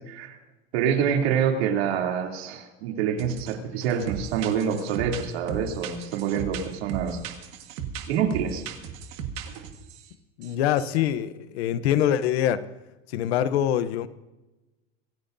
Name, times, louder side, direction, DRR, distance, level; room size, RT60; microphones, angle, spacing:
voice 1, 0.7-7.2 8.1-8.6, right 7 dB, 90° right, 3.0 m, -26 dB
sound 1, 3.2-3.5 3.8-10.1 10.4-10.5 10.8-11.0, right 7 dB, 45° right, 1.6 m, -36 dB
voice 2, 10.4-12.6 13.1-14.1, left 10 dB, 80° left, 0.9 m, -24 dB
26.0 x 15.5 x 2.7 m
supercardioid pair, 180°, 31 cm